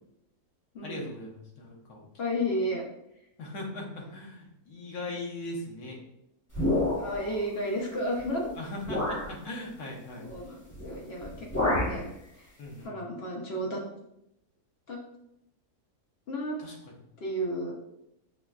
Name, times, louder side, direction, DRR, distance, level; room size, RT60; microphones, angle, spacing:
voice 1, 0.8-2.0 3.4-6.0 8.5-10.3 12.6-12.9 16.6-17.0, left 1 dB, 80° left, -1 dB, 1.3 m, -39 dB
voice 2, 2.2-2.8 6.7-8.5 10.2-10.6 10.8-12.0 12.3-12.5 12.8-13.8 14.9-15.0 16.3-16.6 17.2-17.7, equal, 60° left, -1 dB, 0.7 m, -32 dB
sound 1, 6.5-7.3 8.2-8.3 8.8-9.3 10.7-11.0 11.2-12.0, left 1 dB, 15° left, 0.7 m, -28 dB
5.9 x 2.2 x 2.3 m, 0.80 s
omnidirectional pair, 1.7 m